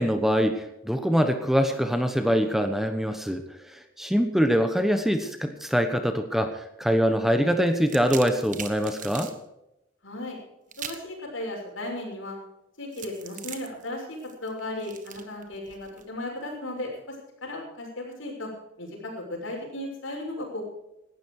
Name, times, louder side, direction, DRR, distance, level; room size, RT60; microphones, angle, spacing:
voice 1, 0.0-9.3, equal, ahead, 7 dB, 1.1 m, -24 dB
sound 1, 7.7-9.4 10.7-11.1 12.9-16.0, right 8 dB, 40° right, 1.6 m, -40 dB
voice 2, 10.0-10.4 10.8-12.4 12.8-17.1 17.4-18.5 18.8-20.6, left 1 dB, 75° left, 1 dB, 6.2 m, -35 dB
17.5 x 13.0 x 4.9 m, 0.89 s
head